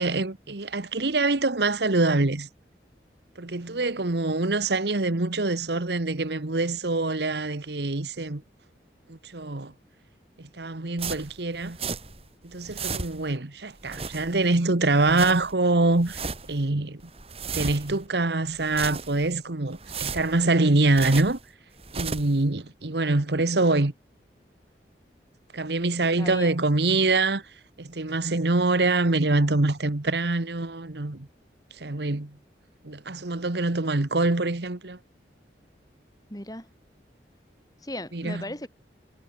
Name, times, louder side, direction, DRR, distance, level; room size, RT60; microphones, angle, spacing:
voice 1, 0.0-2.5 3.4-8.4 9.1-9.7 10.6-11.8 12.4-16.2 16.5-17.0 17.5-21.4 21.9-23.9 25.5-27.4 27.8-31.3 31.8-32.4 32.8-35.0 38.1-38.4, right 2 dB, 70° right, 1.4 m, -25 dB
sound 1, 11.0-12.3 12.5-13.4 13.8-14.6 14.9-15.5 15.9-16.6 17.0-18.1 18.5-19.3 19.7-21.4 21.8-22.4, right 5 dB, 35° right, 3.5 m, -35 dB
voice 2, 26.2-26.5 36.3-36.7 37.8-38.7, left 1 dB, 20° left, 4.6 m, -36 dB
head